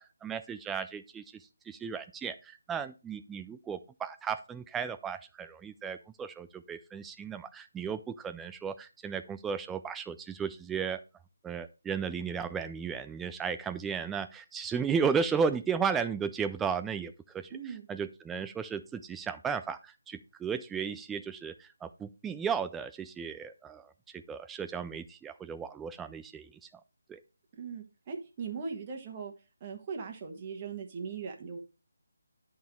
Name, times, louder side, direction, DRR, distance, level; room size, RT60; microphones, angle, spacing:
voice 1, 0.0-11.0 11.4-17.5 17.9-26.6 27.1-27.2, right 6 dB, 5° right, 10 dB, 0.3 m, -35 dB
voice 2, 17.5-17.9 27.6-29.3 29.6-31.6, right 5 dB, 25° right, 2 dB, 1.3 m, -39 dB
10.5 x 3.7 x 4.5 m, 0.31 s
figure-of-eight pair, 170°, 0 cm